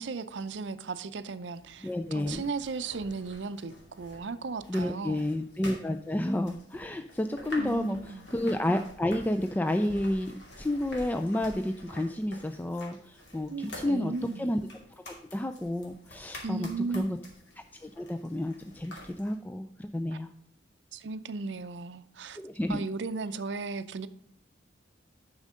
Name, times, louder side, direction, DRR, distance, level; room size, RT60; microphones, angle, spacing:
voice 1, 0.0-5.2 7.6-8.3 13.5-14.5 16.4-17.2 20.9-22.4 22.7-24.1, right 4 dB, 70° right, 0.5 m, -36 dB
sound 1, 1.5-19.3, left 1 dB, 70° left, 2.5 m, -48 dB
voice 2, 1.8-2.5 4.7-14.7 15.3-16.7 16.9-17.2 17.7-20.3 22.4-22.8, left 1 dB, 10° left, 0.3 m, -31 dB
9.8 x 6.4 x 3.7 m
head